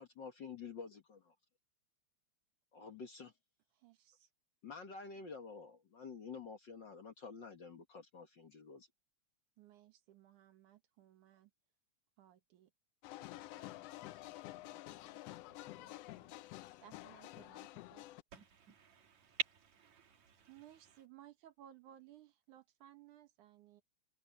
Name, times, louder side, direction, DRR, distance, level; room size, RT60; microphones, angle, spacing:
voice 1, 0.0-1.3 2.7-3.3 4.6-8.9, left 5 dB, 45° left, 1.8 m, -49 dB
voice 2, 3.7-4.3 9.6-11.5 12.2-12.7 13.2-15.2 15.5-16.3 16.8-18.1 20.5-23.8, right 12 dB, 80° right, 2.9 m, -61 dB
sound 1, 13.0-18.2, left 17 dB, 85° left, 1.4 m, -50 dB
voice 3, 18.3-20.6, right 6 dB, 65° right, 3.5 m, -46 dB
omnidirectional pair, 3.4 m